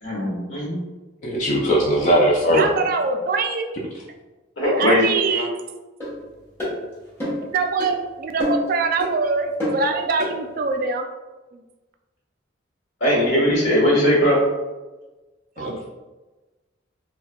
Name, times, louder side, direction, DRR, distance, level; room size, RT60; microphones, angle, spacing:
voice 1, 0.0-0.8 4.6-5.0 5.3-5.4 13.0-14.4, equal, 75° left, -5 dB, 1.3 m, -19 dB
voice 2, 1.2-2.7 15.6-15.8, equal, 40° left, -2 dB, 0.4 m, -19 dB
voice 3, 2.5-3.7 4.6-5.6 7.5-11.1 11.5-11.6 15.6-15.8, right 4 dB, 50° right, 4 dB, 0.3 m, -24 dB
sound 1, 6.0-6.1 6.6-6.8 7.2-7.5 7.8-7.9 8.4-8.7 9.0-9.1 9.6-9.8 10.2-10.3, left 1 dB, 10° left, 1.1 m, -25 dB
4.1 x 2.2 x 2.2 m, 1.2 s
head